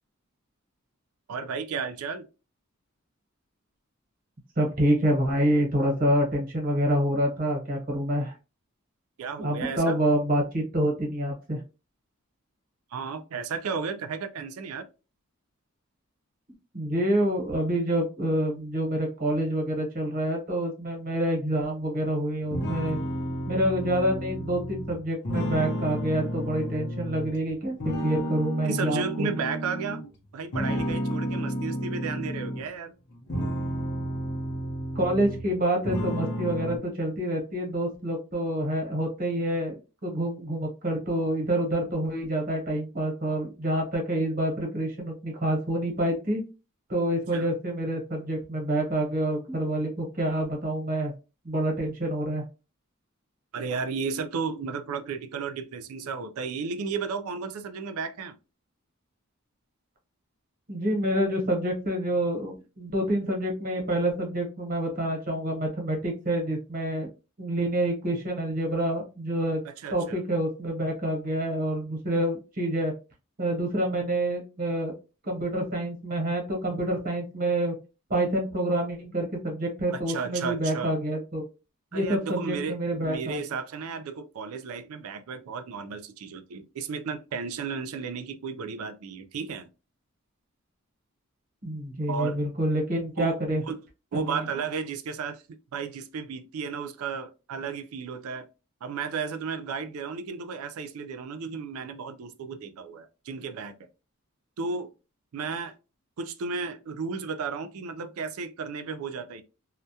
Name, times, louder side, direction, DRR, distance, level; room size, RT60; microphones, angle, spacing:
voice 1, 1.3-2.2 9.2-10.0 12.9-14.9 28.6-30.0 30.3-32.9 47.3-47.5 53.5-58.4 69.6-70.2 79.9-80.9 81.9-89.7 92.1-92.4 93.2-93.4 93.7-93.8 94.1-98.5 98.8-103.8 104.6-104.9 105.3-105.7 106.2-109.4, right 5 dB, 90° right, 0.4 m, -33 dB
voice 2, 4.6-8.3 9.4-11.6 16.7-23.0 23.5-29.3 34.9-46.4 46.9-51.1 51.4-52.4 60.7-67.1 67.4-69.6 69.9-72.9 73.4-74.9 75.2-77.7 78.1-81.4 81.9-83.4 91.6-93.6 94.2-94.5, right 1 dB, 40° right, 0.9 m, -27 dB
sound 1, 22.5-27.4 27.8-30.1 30.5-32.7 33.1-35.5 35.8-36.8, equal, 55° left, 0.6 m, -31 dB
2.2 x 2.1 x 2.7 m
head